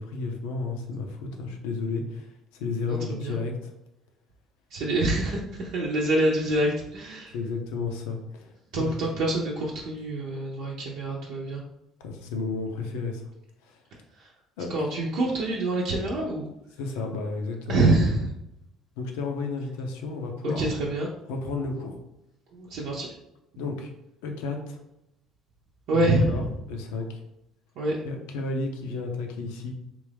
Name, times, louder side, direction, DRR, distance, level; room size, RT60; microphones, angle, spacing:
voice 1, 0.0-2.2 2.5-3.6 7.3-9.1 12.0-13.2 13.7-13.8 14.6-14.9 16.8-17.8 19.0-20.8 21.3-22.0 23.6-23.9 24.2-24.8 25.9-27.2 28.0-29.7, left 3 dB, 90° left, 3 dB, 0.6 m, -32 dB
voice 2, 2.9-3.4 4.7-7.3 8.7-11.6 14.7-16.5 17.7-18.3 20.4-21.1 22.6-23.1 25.9-26.4 27.8-28.0, right 2 dB, 70° right, -4 dB, 0.7 m, -26 dB
3.4 x 2.5 x 3.4 m, 0.85 s
supercardioid pair, 85°, 0 cm